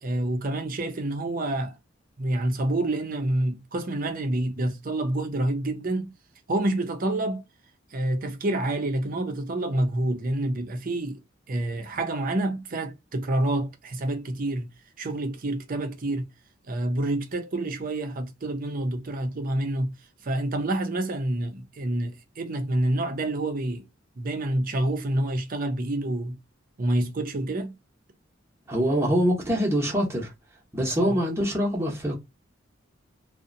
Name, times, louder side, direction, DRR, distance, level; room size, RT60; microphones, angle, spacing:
voice 1, 0.0-1.8 2.2-6.1 6.5-7.4 7.9-11.2 11.5-14.7 15.0-16.3 16.7-19.9 20.2-23.8 24.2-26.4 26.8-27.7 31.0-31.2, right 1 dB, 45° right, 0.6 m, -28 dB
voice 2, 28.7-30.3 30.7-32.2, equal, 15° right, 0.8 m, -24 dB
2.7 x 2.1 x 2.5 m
head